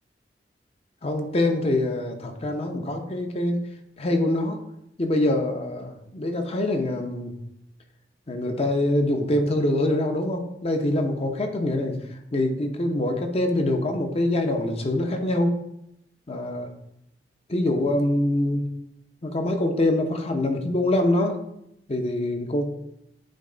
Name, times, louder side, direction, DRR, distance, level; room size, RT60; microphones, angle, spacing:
voice 1, 1.0-3.7 4.0-4.6 5.0-7.3 8.3-15.6 16.3-16.7 17.5-18.7 19.2-21.4 21.9-22.6, left 1 dB, 35° left, 5 dB, 0.8 m, -24 dB
8.9 x 3.1 x 3.8 m, 0.79 s
head